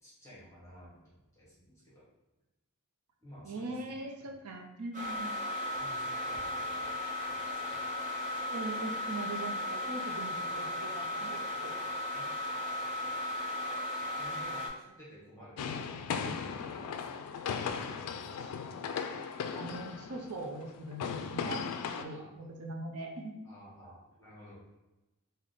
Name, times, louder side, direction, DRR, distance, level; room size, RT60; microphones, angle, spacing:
voice 1, 0.0-1.0 1.3-2.0 3.2-3.9 4.2-4.3 5.8-6.9 7.2-7.8 12.1-12.6 14.2-17.2 18.1-18.5 22.0-22.3 23.0-23.1 23.4-24.6, equal, 15° left, -8 dB, 1.0 m, -54 dB
voice 2, 3.4-5.3 8.5-11.7 19.5-23.4, right 2 dB, 75° right, 2 dB, 0.6 m, -41 dB
sound 1, 4.9-14.7, left 1 dB, 35° right, 0.8 m, -36 dB
sound 2, 15.6-22.0, left 6 dB, 85° left, 0.3 m, -37 dB
3.4 x 2.1 x 3.8 m, 0.99 s
head